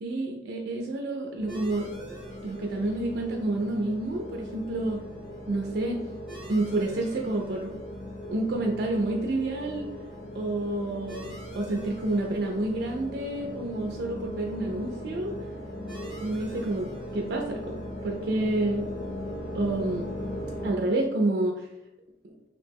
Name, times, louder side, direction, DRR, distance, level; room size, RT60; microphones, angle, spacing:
voice 1, 0.0-1.9 2.4-5.0 5.5-6.0 6.5-7.7 8.3-9.9 10.3-11.2 11.6-15.3 16.2-16.9 17.1-18.8 19.5-20.1 20.6-21.7, right 2 dB, 60° right, 1 dB, 0.3 m, -29 dB
sound 1, 1.4-20.7, left 1 dB, 35° left, 0.9 m, -39 dB
sound 2, 1.5-20.6, right 1 dB, ahead, 0.8 m, -51 dB
2.8 x 2.1 x 3.3 m, 0.90 s
head